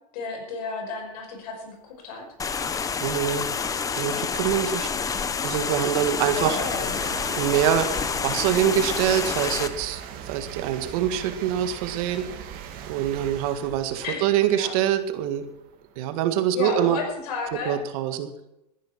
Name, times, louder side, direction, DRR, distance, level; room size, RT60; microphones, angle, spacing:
voice 1, 0.1-2.2 5.9-6.0 6.3-7.0 14.0-14.7 16.5-17.8, left 5 dB, 65° left, 4 dB, 5.6 m, -32 dB
sound 1, 2.4-9.7, left 6 dB, 15° left, 0.9 m, -28 dB
sound 2, 2.4-2.5 3.1-17.8, right 8 dB, 45° right, 2.3 m, -41 dB
voice 2, 3.0-3.6 4.0-4.9 5.4-6.6 7.4-7.9 8.2-12.3 12.9-15.5 16.0-17.0 17.7-18.3, right 10 dB, 60° right, 9 dB, 1.7 m, -24 dB
15.0 x 10.5 x 5.9 m, 0.86 s
supercardioid pair, 135°, 21 cm